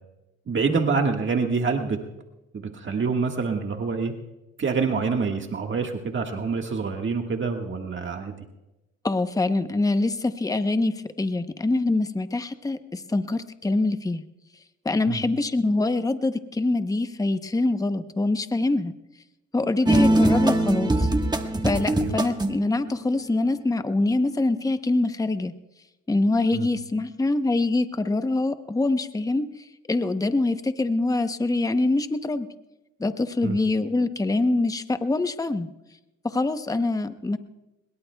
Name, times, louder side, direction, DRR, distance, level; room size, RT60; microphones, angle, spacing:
voice 1, 0.5-2.0 2.5-4.1 4.6-8.5 15.1-15.2 21.9-22.2 26.5-26.7 33.4-33.6, right 4 dB, 40° right, 3 dB, 1.6 m, -26 dB
voice 2, 9.0-14.2 14.8-18.9 19.5-21.1 21.6-25.5 26.1-32.5 33.0-35.7 36.2-37.4, left 2 dB, 10° left, 10 dB, 0.8 m, -24 dB
sound 1, 19.9-22.7, right 1 dB, 15° right, 1.3 m, -21 dB
22.5 x 21.5 x 2.3 m, 0.97 s
cardioid pair, 90°, 30 cm